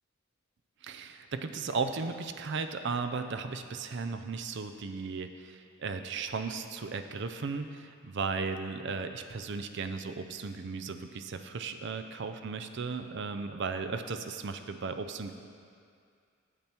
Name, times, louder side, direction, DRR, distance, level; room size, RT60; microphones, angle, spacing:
voice 1, 0.8-15.3, right 4 dB, 60° right, 8 dB, 0.5 m, -36 dB
8.8 x 7.6 x 4.4 m, 2.3 s
head